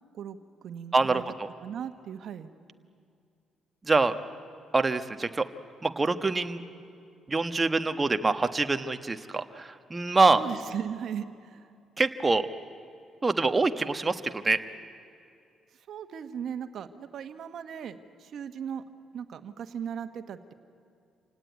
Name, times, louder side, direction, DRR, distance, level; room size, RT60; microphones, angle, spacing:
voice 1, 0.1-1.2 1.6-2.5 10.4-11.7 15.9-18.8 19.1-20.5, right 8 dB, 65° right, 9 dB, 1.4 m, -37 dB
voice 2, 0.9-1.5 3.9-4.1 4.7-5.4 5.8-6.6 7.3-10.4 12.0-12.4 13.2-14.6, right 3 dB, 25° right, 8 dB, 1.2 m, -25 dB
27.0 x 18.0 x 9.4 m, 2.4 s
cardioid pair, 90°, 0 cm